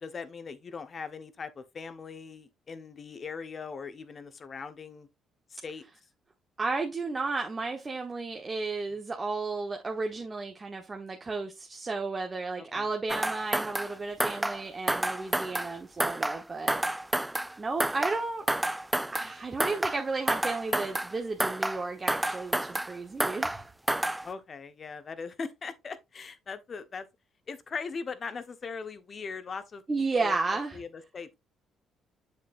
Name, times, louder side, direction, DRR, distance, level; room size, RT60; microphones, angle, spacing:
voice 1, 0.0-5.1 5.5-5.8 12.6-12.9 24.2-27.1 27.5-31.4, left 5 dB, 40° left, 1.2 m, -40 dB
voice 2, 6.6-16.8 17.6-18.5 19.1-23.7 29.9-30.8, right 3 dB, 30° right, 1.2 m, -33 dB
sound 1, 13.1-13.9 14.2-14.6 14.9-15.7 16.0-16.4 16.7-17.5 17.8-18.2 18.5-19.3 19.6-20.0 20.3-21.1 21.4-21.8 22.1-22.9 23.2-23.6 23.9-24.3, right 1 dB, 10° right, 0.3 m, -29 dB
7.4 x 7.0 x 2.6 m
cardioid pair, 85°, 0 cm